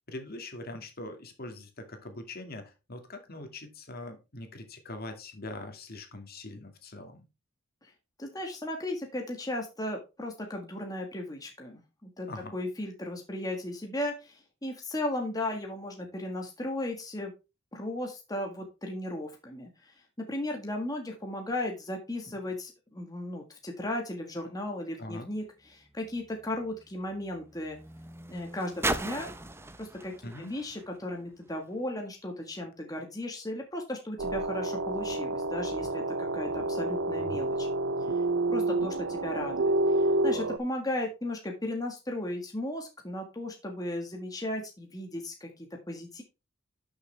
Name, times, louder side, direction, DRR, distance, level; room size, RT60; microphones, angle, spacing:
voice 1, 0.0-7.2 12.3-12.6 25.0-25.3 30.2-30.6, left 2 dB, 50° left, 5 dB, 2.2 m, -42 dB
voice 2, 8.2-17.3 17.7-19.9 20.3-27.8 28.3-29.3 29.8-30.1 30.4-37.7 38.0-38.1 38.5-46.2, left 1 dB, 20° left, 2 dB, 1.6 m, -36 dB
sound 1, 25.3-31.8 32.6-32.7, right 2 dB, 15° right, 0.7 m, -39 dB
sound 2, 34.2-40.6, right 2 dB, 85° right, 0.8 m, -29 dB
12.0 x 6.6 x 3.4 m, 0.27 s
head